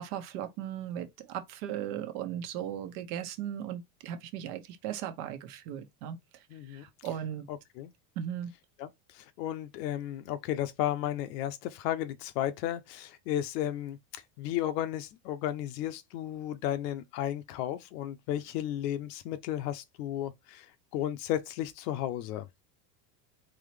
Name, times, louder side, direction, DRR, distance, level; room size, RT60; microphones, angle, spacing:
voice 1, 0.0-7.5 8.2-8.5, right 10 dB, 65° right, 1.1 m, -37 dB
voice 2, 6.5-6.8 7.5-7.9 8.8-20.7 20.9-22.5, left 12 dB, 70° left, 0.8 m, -34 dB
3.9 x 3.0 x 3.3 m
supercardioid pair, 135°, 50 cm